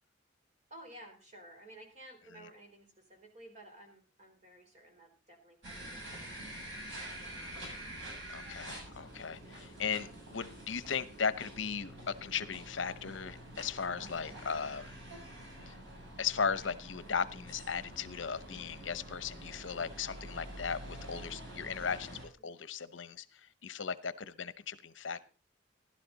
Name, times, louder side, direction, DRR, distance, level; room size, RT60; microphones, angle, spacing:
voice 1, 0.7-6.4 6.9-7.5 22.4-22.5, right 1 dB, 40° right, 3 dB, 4.1 m, -54 dB
sound 1, 5.6-22.2, right 1 dB, 70° right, 7.3 m, -47 dB
voice 2, 8.3-14.9 15.7-15.8 16.2-25.2, left 6 dB, 75° left, 15 dB, 0.8 m, -37 dB
16.0 x 11.5 x 4.0 m, 0.33 s
head